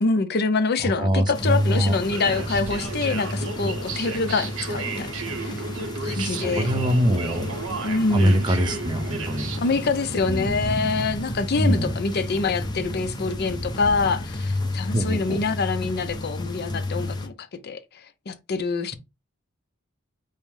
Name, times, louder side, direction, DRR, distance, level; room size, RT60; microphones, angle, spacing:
voice 1, 0.0-5.1 5.4-5.6 6.0-6.7 7.8-8.4 9.6-18.9, left 4 dB, 50° left, 0.5 m, -25 dB
voice 2, 0.8-1.9 6.1-7.5 8.1-9.5 10.3-10.8 11.6-11.9 14.9-15.4, equal, 20° right, 0.6 m, -23 dB
sound 1, 1.3-17.3, left 1 dB, 20° left, 0.8 m, -32 dB
sound 2, 1.8-10.4, right 3 dB, 65° right, 0.7 m, -34 dB
5.5 x 2.1 x 4.7 m
head